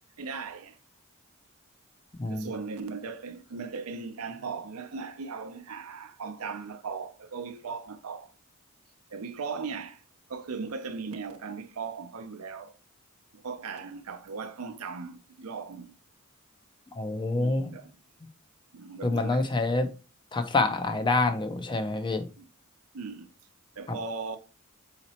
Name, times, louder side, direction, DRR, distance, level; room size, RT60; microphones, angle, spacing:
voice 1, 0.2-0.8 2.3-8.3 9.1-10.0 10.3-12.8 13.4-15.9 17.4-18.0 18.7-19.5 22.4-22.5 22.9-23.3 23.8-24.4, right 5 dB, 75° right, 0.6 m, -38 dB
voice 2, 17.0-17.7 19.0-19.9 20.3-22.2, left 3 dB, 20° left, 0.5 m, -27 dB
4.1 x 2.9 x 4.2 m
head